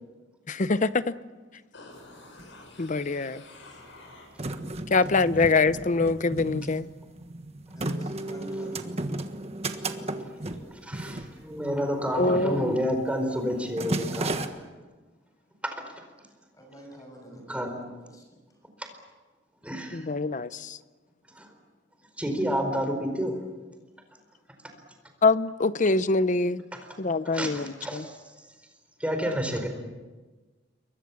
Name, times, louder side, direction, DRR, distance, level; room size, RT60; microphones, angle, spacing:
voice 1, 0.5-1.0 2.8-3.4 4.9-6.9 12.2-12.8 19.9-20.8 25.2-26.6 27.0-28.0, left 3 dB, 40° left, 0.8 m, -24 dB
sound 1, 1.7-4.7 5.1-5.2, left 2 dB, 80° left, 6.8 m, -49 dB
sound 2, 2.0-2.1 2.2-3.1 3.7-12.0 12.3-12.6 12.9-13.2 13.5-14.5, right 2 dB, 35° right, 1.5 m, -34 dB
voice 2, 7.7-9.1 9.9-10.7 16.5-18.3, right 1 dB, 20° left, 6.8 m, -47 dB
voice 3, 10.8-14.4 17.5-17.8 19.6-20.0 21.4-21.5 22.2-23.3 26.7-26.8 27.3-28.2 29.0-29.7, equal, 5° right, 4.6 m, -29 dB
28.0 x 23.5 x 7.2 m
head